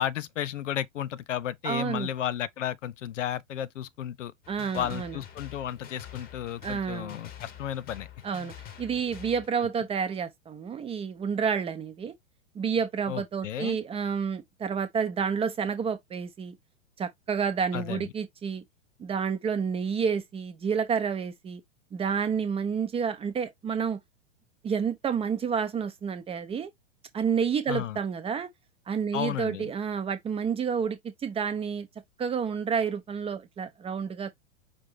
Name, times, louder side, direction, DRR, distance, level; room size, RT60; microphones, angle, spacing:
voice 1, 0.0-4.3 4.7-8.1 9.6-9.7 13.1-13.8 17.7-18.1 27.7-28.0 29.1-29.7, left 11 dB, 65° left, 0.6 m, -33 dB
voice 2, 1.6-2.1 4.5-5.2 6.6-7.2 8.2-12.1 12.5-16.6 17.0-18.6 19.0-21.6 21.9-24.0 24.6-26.7 27.1-28.5 28.9-31.9 32.2-34.3, right 6 dB, 15° right, 0.7 m, -29 dB
sound 1, 4.4-9.5, left 10 dB, 25° left, 1.0 m, -46 dB
5.4 x 2.7 x 3.5 m
figure-of-eight pair, 105°, 39 cm